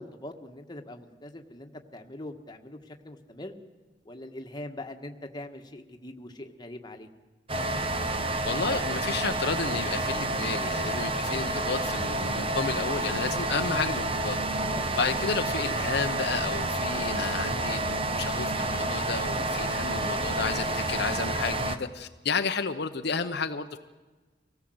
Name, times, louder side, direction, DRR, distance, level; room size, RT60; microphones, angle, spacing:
voice 1, 0.0-3.5 4.0-7.1 14.7-14.9, left 1 dB, 25° left, 4 dB, 1.6 m, -42 dB
sound 1, 7.5-21.8, right 2 dB, 30° right, 1.1 m, -29 dB
voice 2, 8.5-14.4 15.0-23.8, left 5 dB, 60° left, 7 dB, 0.9 m, -32 dB
25.0 x 17.5 x 7.9 m, 1.3 s
head